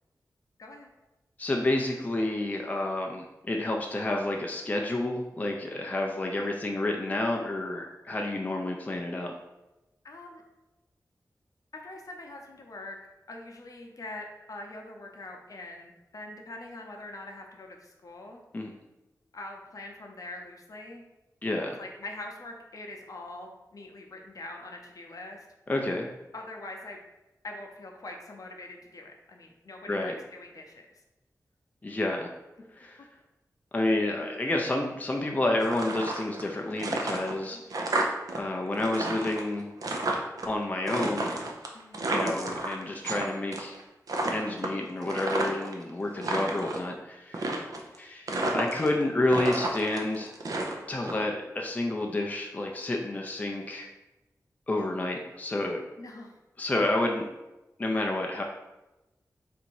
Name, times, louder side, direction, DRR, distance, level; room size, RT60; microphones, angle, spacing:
voice 1, 0.6-0.9 10.0-10.4 11.7-13.0 13.3-18.4 19.3-21.0 21.8-25.5 26.3-27.0 27.4-30.9 37.5-37.6 41.7-42.1 56.0-56.4, left 2 dB, 60° left, 1 dB, 0.7 m, -43 dB
voice 2, 1.4-9.3 18.5-18.7 21.4-21.8 25.7-26.1 29.9-30.1 31.8-32.3 32.8-33.0 33.7-38.1 38.4-39.7 40.5-41.3 42.1-43.8 44.3-47.7 48.0-50.3 50.9-53.9 54.7-55.8 56.6-57.2 57.8-58.4, left 2 dB, 25° left, 1 dB, 0.4 m, -29 dB
sound 1, 35.6-36.5 36.8-38.4 38.7-40.5 40.9-43.2 43.5-43.8 44.1-45.7 46.1-46.8 47.3-48.0 48.3-49.0 49.3-51.1, right 2 dB, 65° right, 0.6 m, -31 dB
4.0 x 2.6 x 4.6 m, 1.0 s
wide cardioid pair, 120°, 7 cm